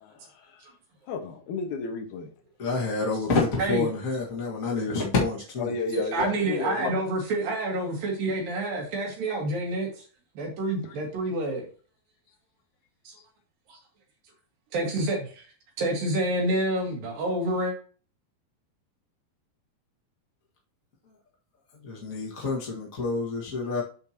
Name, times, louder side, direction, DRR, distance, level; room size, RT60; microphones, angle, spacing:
voice 1, 0.2-0.6 1.1-2.3 5.6-7.1 10.8-11.0, left 4 dB, 65° left, 4 dB, 2.5 m, -33 dB
voice 2, 2.6-5.7 21.8-23.8, left 3 dB, 45° left, -3 dB, 1.0 m, -28 dB
voice 3, 6.1-9.9 10.4-11.6 13.1-13.2 13.7-13.8 14.7-15.5 15.8-17.8, right 1 dB, 70° right, 0 dB, 3.4 m, -28 dB
12.5 x 4.5 x 2.8 m, 0.40 s
omnidirectional pair, 4.3 m